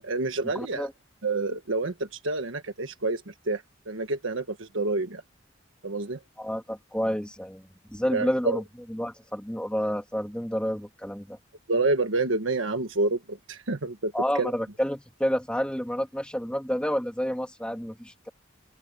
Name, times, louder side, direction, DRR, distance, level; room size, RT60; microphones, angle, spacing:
voice 1, 0.0-0.9 1.2-5.2 5.8-6.2 8.1-8.6 11.7-14.1 14.4-14.5, right 3 dB, 85° right, 1.4 m, -28 dB
voice 2, 0.5-0.9 6.4-7.6 7.9-8.6 8.9-11.4 14.1-18.3, equal, 5° left, 2.5 m, -29 dB
open air
head